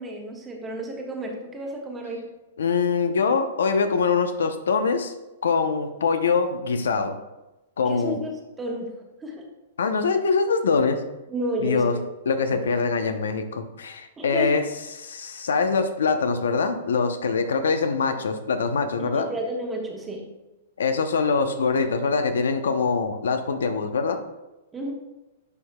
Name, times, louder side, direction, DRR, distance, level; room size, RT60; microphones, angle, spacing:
voice 1, 0.0-2.3 7.8-9.5 11.3-12.0 12.5-12.6 14.2-14.6 19.0-20.3 24.7-24.9, equal, 15° right, 1 dB, 1.1 m, -32 dB
voice 2, 2.6-5.1 5.4-7.2 7.8-8.2 9.8-11.0 11.6-12.0 12.3-14.6 14.9-19.3 20.8-24.2, left 5 dB, 90° left, 8 dB, 0.6 m, -23 dB
9.6 x 4.8 x 2.2 m, 1.0 s
hypercardioid pair, 140°, 0 cm